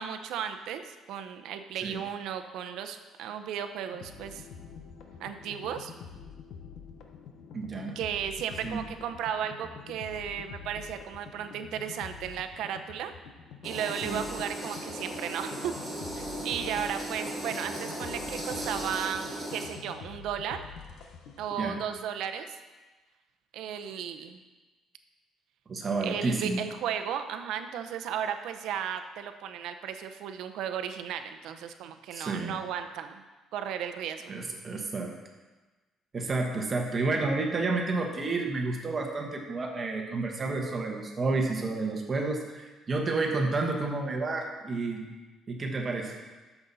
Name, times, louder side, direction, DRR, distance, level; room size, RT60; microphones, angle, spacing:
voice 1, 0.0-4.4 5.2-5.9 8.0-13.1 13.6-15.7 16.2-20.6 21.4-22.6 23.5-24.4 26.0-33.2 33.5-34.3, right 8 dB, 75° right, 8 dB, 0.7 m, -35 dB
sound 1, 3.9-21.8, left 6 dB, 70° left, 1.1 m, -47 dB
voice 2, 7.5-7.9 8.6-8.8 14.0-14.2 21.6-21.8 25.7-26.6 32.1-32.5 34.3-35.1 36.1-45.1 45.5-46.2, right 3 dB, 30° right, 2 dB, 1.2 m, -30 dB
sound 2, 13.6-19.6, right 1 dB, ahead, 2.6 m, -37 dB
12.5 x 7.1 x 4.1 m, 1.2 s
cardioid pair, 150°, 0 cm